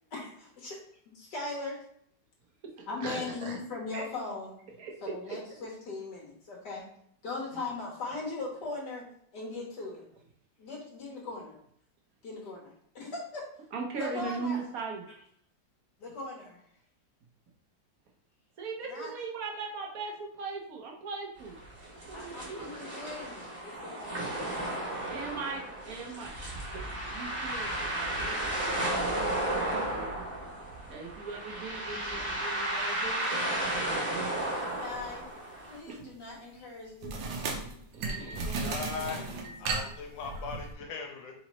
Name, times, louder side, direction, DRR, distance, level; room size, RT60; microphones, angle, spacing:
voice 1, 0.1-0.8 1.1-1.8 2.9-4.6 5.0-6.9 7.2-9.0 9.3-10.0 10.6-11.6 12.2-13.4 14.0-14.6 16.0-16.6 18.9-19.1 22.1-25.1 27.1-27.2 34.8-35.2 35.7-37.6 38.0-39.3, left 3 dB, 65° left, -2 dB, 1.6 m, -40 dB
voice 2, 2.6-3.6 3.9-4.0 4.8-5.4 7.5-7.6 13.7-15.0 18.6-21.6 22.1-22.7 25.1-26.4 27.0-30.1 30.9-33.5 33.8-34.5 35.9-36.1 37.9-38.2, right 4 dB, 55° right, 1 dB, 1.2 m, -39 dB
sound 1, 21.4-35.8, right 1 dB, 35° right, 1.3 m, -34 dB
sound 2, 34.9-35.2 37.0-40.7, right 4 dB, 80° right, 1.5 m, -35 dB
voice 3, 38.4-41.3, left 5 dB, 80° left, 2 dB, 1.6 m, -39 dB
4.2 x 3.9 x 3.0 m, 0.68 s
omnidirectional pair, 2.0 m